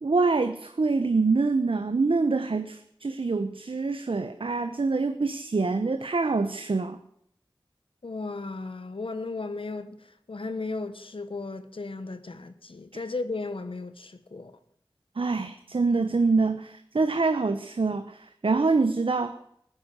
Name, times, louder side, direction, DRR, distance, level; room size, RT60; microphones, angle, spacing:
voice 1, 0.0-7.0 12.9-13.0 15.2-19.4, right 3 dB, 75° right, 0.9 m, -25 dB
voice 2, 8.0-14.5, left 3 dB, 80° left, 1.3 m, -35 dB
15.5 x 10.0 x 8.1 m
wide cardioid pair, 50°, 9 cm